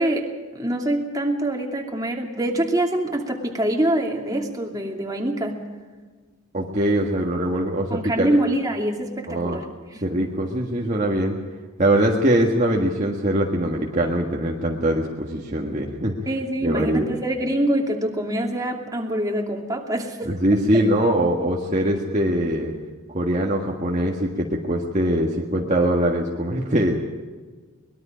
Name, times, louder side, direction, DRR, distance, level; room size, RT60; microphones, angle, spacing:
voice 1, 0.0-5.6 7.9-9.7 9.9-10.1 16.3-20.3, right 1 dB, 15° right, 1 dB, 2.6 m, -25 dB
voice 2, 6.5-8.4 9.3-9.6 10.0-11.4 11.8-16.2 16.6-17.1 20.2-22.7 23.1-26.9, right 1 dB, 35° right, -1 dB, 1.7 m, -22 dB
24.0 x 21.0 x 5.2 m, 1.4 s
head